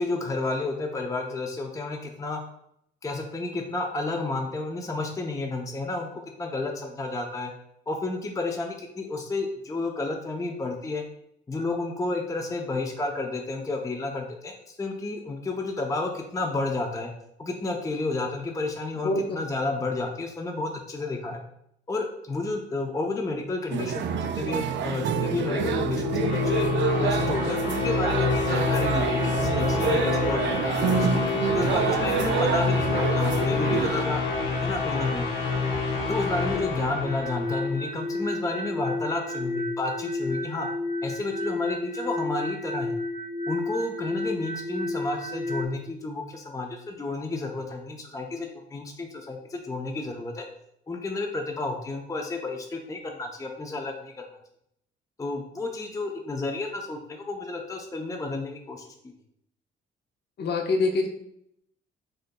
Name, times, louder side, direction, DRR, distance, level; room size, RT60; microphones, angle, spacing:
voice 1, 0.0-2.4 3.0-6.1 6.4-7.5 7.9-11.0 11.5-17.1 17.4-21.4 21.9-26.7 27.0-31.2 31.5-34.2 34.6-35.3 36.1-40.7 41.0-42.9 43.5-50.4 50.9-54.3 55.2-58.9, left 2 dB, 15° left, 2 dB, 0.6 m, -31 dB
voice 2, 19.0-19.4 36.5-36.6 60.4-61.1, left 3 dB, 55° left, 3 dB, 0.7 m, -25 dB
sound 1, 23.7-34.1, right 8 dB, 65° right, 0.5 m, -28 dB
sound 2, 24.7-37.8, left 4 dB, 80° left, 1.0 m, -27 dB
sound 3, 37.0-45.7, left 2 dB, 45° right, 0.9 m, -31 dB
7.6 x 2.7 x 2.2 m, 0.75 s
cardioid pair, 90°, 20 cm